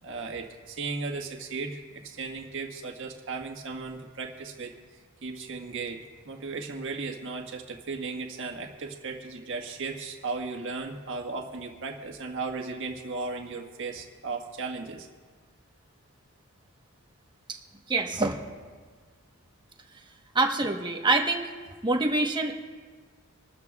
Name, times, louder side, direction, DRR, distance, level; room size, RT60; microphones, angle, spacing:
voice 1, 0.0-4.7 5.2-15.1, right 4 dB, 60° right, 2 dB, 1.6 m, -36 dB
voice 2, 17.9-18.4 20.3-21.5 21.8-22.5, right 3 dB, 20° right, 2 dB, 1.2 m, -25 dB
27.0 x 13.0 x 2.4 m, 1.5 s
head